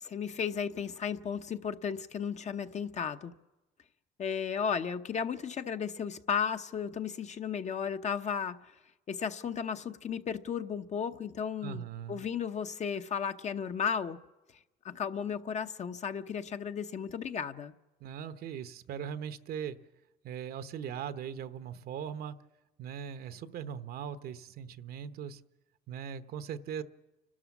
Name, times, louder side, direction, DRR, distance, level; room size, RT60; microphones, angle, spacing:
voice 1, 0.0-3.3 4.2-8.6 9.1-11.8 12.1-14.2 14.8-17.7, left 7 dB, 45° left, 8 dB, 0.9 m, -34 dB
voice 2, 11.6-12.2 18.0-19.8 20.2-22.4 22.8-25.4 25.9-26.8, right 8 dB, 65° right, 11 dB, 0.9 m, -39 dB
29.5 x 12.5 x 7.2 m, 1.1 s
cardioid pair, 110°, 17 cm